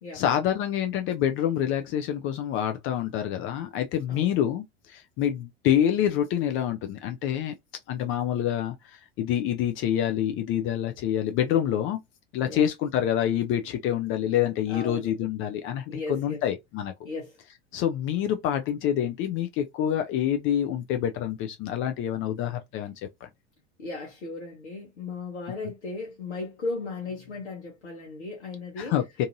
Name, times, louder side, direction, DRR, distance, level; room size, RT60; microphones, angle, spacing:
voice 1, 0.1-7.5 7.9-12.0 12.3-16.9 17.7-22.9 23.2-23.3 28.8-29.0, left 10 dB, 40° left, 0.4 m, -27 dB
voice 2, 14.7-15.2 15.9-16.4 17.0-17.4 23.8-29.0, left 3 dB, 85° left, 0.9 m, -36 dB
2.6 x 2.5 x 2.6 m
hypercardioid pair, 80°, 34 cm